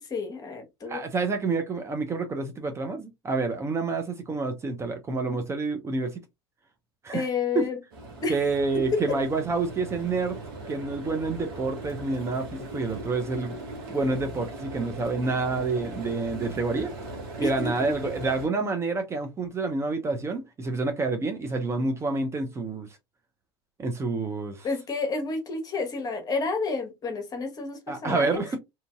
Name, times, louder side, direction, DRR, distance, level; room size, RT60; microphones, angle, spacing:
voice 1, 0.1-1.0 7.1-7.8 8.2-8.3 8.9-9.2 17.4-17.7 24.6-28.6, left 4 dB, 30° left, 1.0 m, -30 dB
voice 2, 0.9-6.2 7.0-7.3 7.5-7.7 8.3-10.4 10.7-13.6 13.9-16.9 17.4-22.9 23.8-24.7 27.9-28.6, right 3 dB, 20° right, 0.5 m, -28 dB
sound 1, 7.9-18.5, right 2 dB, 65° right, 1.0 m, -39 dB
2.8 x 2.5 x 2.3 m
hypercardioid pair, 75°, 12 cm